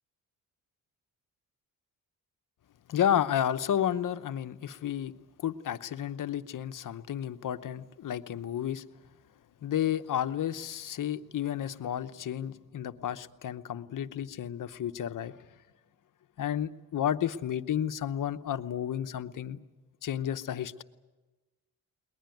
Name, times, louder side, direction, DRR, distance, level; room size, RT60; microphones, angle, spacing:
voice 1, 2.9-5.1 5.4-8.8 9.6-15.4 16.4-19.6 20.0-20.8, left 10 dB, 60° left, 11 dB, 0.9 m, -31 dB
21.0 x 20.0 x 9.3 m, 1.2 s
cardioid pair, 105°, 37 cm